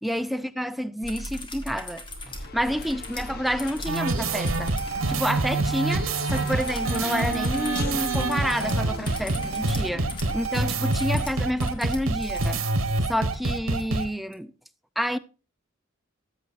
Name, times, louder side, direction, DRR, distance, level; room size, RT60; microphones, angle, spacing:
voice 1, 0.0-4.7 5.1-10.1 10.3-12.6 13.1-14.5 15.0-15.2, equal, ahead, 0.4 m, -29 dB
sound 1, 1.0-5.0 6.4-12.6 14.3-14.4, left 1 dB, 25° left, 1.6 m, -39 dB
Race car auto racing, 2.0-11.6, left 3 dB, 50° left, 0.8 m, -39 dB
sound 2, 3.9-14.1, right 2 dB, 85° right, 1.2 m, -26 dB
14.0 x 7.8 x 2.5 m
head